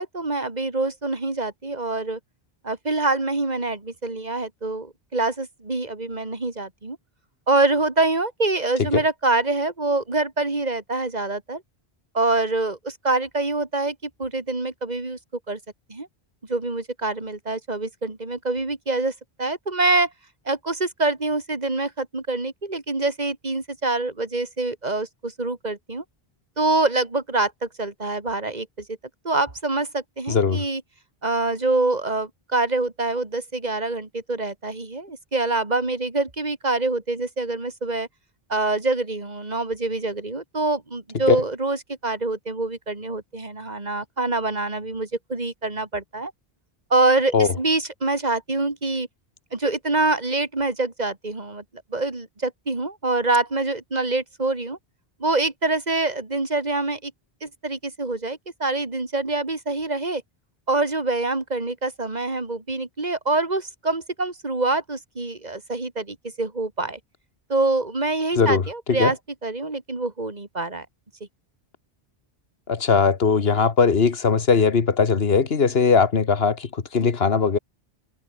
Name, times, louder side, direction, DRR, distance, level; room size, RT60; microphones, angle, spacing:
voice 1, 0.0-2.2 2.6-7.0 7.5-11.6 12.1-15.2 15.5-15.6 15.9-16.1 16.5-19.1 19.4-20.1 20.5-26.0 26.6-29.0 29.2-30.8 31.2-38.1 38.5-46.3 46.9-49.1 49.5-51.6 51.9-54.8 55.2-57.1 57.4-60.2 60.7-67.0 67.5-70.9, right 2 dB, 45° right, 2.7 m, -25 dB
voice 2, 30.3-30.6 41.3-41.4 47.3-47.5 68.4-68.6 68.9-69.1 72.7-76.7 76.9-77.6, left 5 dB, 75° left, 1.7 m, -19 dB
omnidirectional pair, 1.0 m